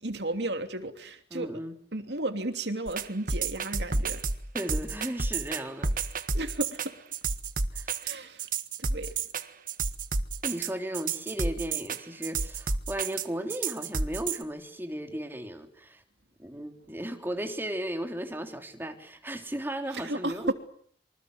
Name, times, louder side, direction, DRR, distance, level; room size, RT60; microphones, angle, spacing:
voice 1, 0.0-1.5 1.9-4.2 6.3-6.9 8.0-8.5 8.8-9.1 19.9-20.5, right 1 dB, 70° right, 7 dB, 3.0 m, -33 dB
voice 2, 1.3-1.7 4.5-5.9 7.7-7.9 10.4-16.0 16.4-20.5, right 1 dB, 10° right, 5 dB, 3.3 m, -35 dB
sound 1, 2.9-14.4, right 4 dB, 50° right, 1.6 m, -30 dB
27.0 x 24.5 x 8.0 m, 0.62 s
head